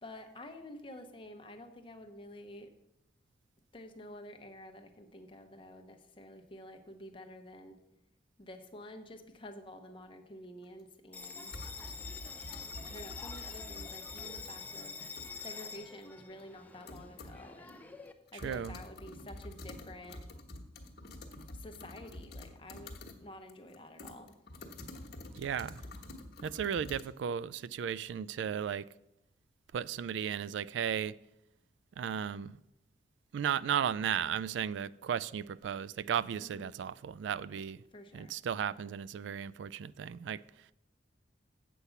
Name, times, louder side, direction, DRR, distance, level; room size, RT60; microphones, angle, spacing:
voice 1, 0.0-2.7 3.7-7.8 8.4-11.6 12.8-15.0 15.4-17.8 18.3-20.2 21.5-24.3 36.4-36.8 37.7-38.3, left 1 dB, 30° left, 0.9 m, -50 dB
sound 1, 10.6-10.7 11.5-14.5 14.9-15.4 15.7-15.8 16.4-16.5 16.9-17.4 17.7-17.8 18.1-23.2 23.5-27.0, left 1 dB, 60° left, 1.3 m, -47 dB
Bell, 11.1-18.1, left 5 dB, 10° left, 0.6 m, -46 dB
voice 2, 18.4-18.8 25.3-25.8 26.4-28.9 29.7-31.2 32.0-32.6 33.3-37.8 38.1-40.4, right 8 dB, 75° right, 0.3 m, -35 dB
8.2 x 6.9 x 5.7 m
head